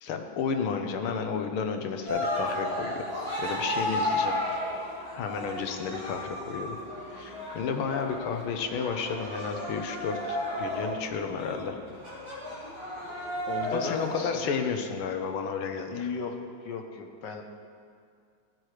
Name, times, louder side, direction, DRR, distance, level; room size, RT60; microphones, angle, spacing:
voice 1, 0.0-3.0 3.4-4.4 5.1-6.8 7.1-11.8 13.7-16.1, left 6 dB, 90° left, 6 dB, 1.8 m, -32 dB
voice 2, 0.7-1.0 13.5-14.9 15.9-16.4 16.6-17.4, left 5 dB, 65° left, 4 dB, 1.5 m, -36 dB
Cheering, 2.1-14.5, left 1 dB, 15° right, 3.4 m, -34 dB
15.0 x 7.7 x 4.9 m, 2.2 s
omnidirectional pair, 2.3 m